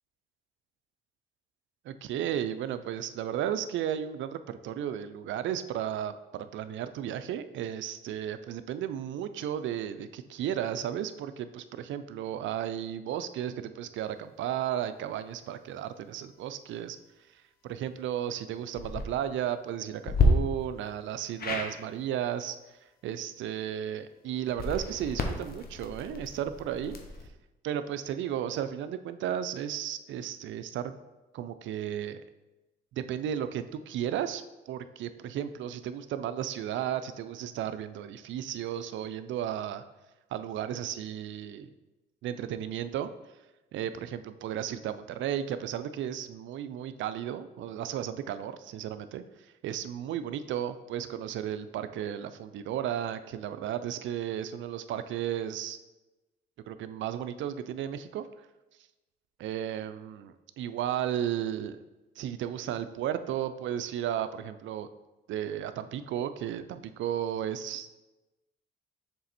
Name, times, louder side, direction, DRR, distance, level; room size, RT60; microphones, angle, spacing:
voice 1, 1.8-17.0 17.3-22.8 23.0-27.0 27.6-30.9 31.3-32.2 32.9-39.8 40.3-41.7 42.2-43.1 43.7-55.8 56.7-58.3 59.4-61.8 62.2-64.9 65.3-67.9, right 10 dB, 75° right, 11 dB, 0.4 m, -34 dB
sound 1, 18.7-19.0 20.1-20.3 21.4-21.7 24.5-27.3, left 5 dB, 50° left, 0.9 m, -31 dB
6.8 x 3.3 x 4.3 m, 1.1 s
cardioid pair, 90°, 20 cm